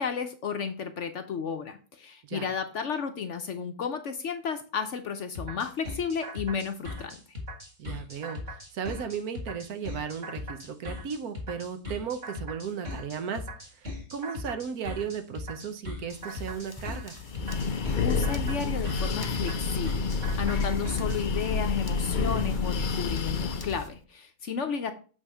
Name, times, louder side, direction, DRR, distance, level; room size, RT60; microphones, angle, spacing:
voice 1, 0.0-7.2 18.0-20.0 20.4-24.9, left 6 dB, 60° left, 8 dB, 0.9 m, -33 dB
sound 1, 5.3-21.2, left 2 dB, 30° right, 1.9 m, -39 dB
voice 2, 7.8-13.5 13.7-17.2, right 7 dB, 70° right, 9 dB, 1.3 m, -35 dB
sound 2, 16.1-23.9, left 3 dB, 25° left, 0.5 m, -47 dB
Breathing, 17.2-23.8, left 4 dB, 80° left, 0.4 m, -29 dB
8.0 x 3.6 x 5.5 m, 0.38 s
omnidirectional pair, 1.7 m